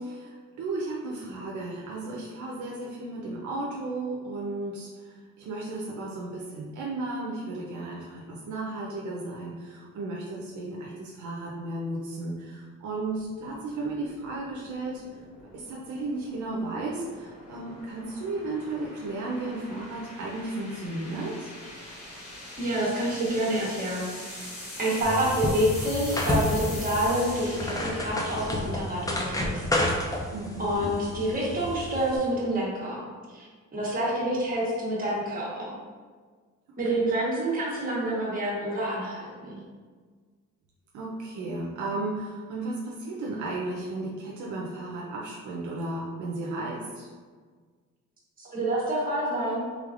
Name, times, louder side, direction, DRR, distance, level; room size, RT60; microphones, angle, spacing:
voice 1, 0.0-4.9 5.4-15.0 15.5-21.5 30.3-30.9 36.9-37.0 40.9-47.1, right 2 dB, 70° right, -3 dB, 0.6 m, -34 dB
sound 1, 13.1-29.3, left 1 dB, 60° left, 1.3 m, -43 dB
voice 2, 22.6-24.5 24.8-29.7 30.6-33.0 33.3-35.7 36.8-39.6 48.4-49.6, right 1 dB, 30° right, -5 dB, 1.2 m, -28 dB
sound 2, 25.0-32.2, left 1 dB, 10° left, 0.5 m, -31 dB
3.4 x 3.2 x 2.4 m, 1.6 s
cardioid pair, 90°, 30 cm